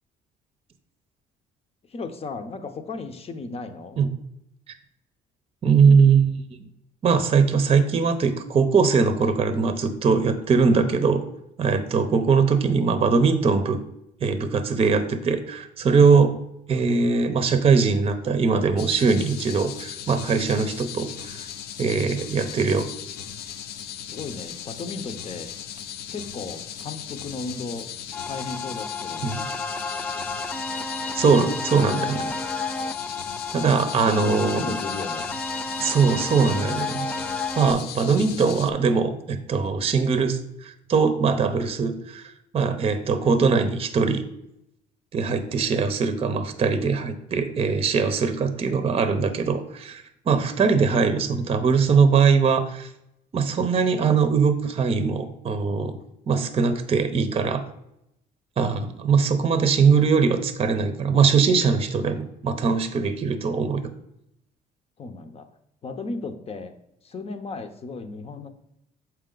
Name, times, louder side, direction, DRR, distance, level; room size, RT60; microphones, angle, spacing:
voice 1, 1.9-4.0 24.1-25.5 26.1-27.9 28.2-29.3 31.8-31.9 34.0-35.3 65.0-65.5 65.8-66.7 67.0-68.5, left 4 dB, 35° left, 8 dB, 0.8 m, -35 dB
voice 2, 5.6-6.3 7.0-11.2 11.6-13.8 14.2-16.4 16.7-21.5 21.8-22.9 29.2-29.5 31.1-32.2 32.6-32.8 33.5-34.8 35.8-37.1 37.6-44.2 45.1-52.9 53.3-56.0 56.3-57.6 58.6-63.9, right 5 dB, 35° right, 9 dB, 0.7 m, -21 dB
sound 1, 18.8-38.7, left 9 dB, 70° left, 0.5 m, -38 dB
sound 2, 28.1-37.7, left 3 dB, 10° left, 0.4 m, -31 dB
7.2 x 4.6 x 3.8 m, 0.80 s
cardioid pair, 110°, 17 cm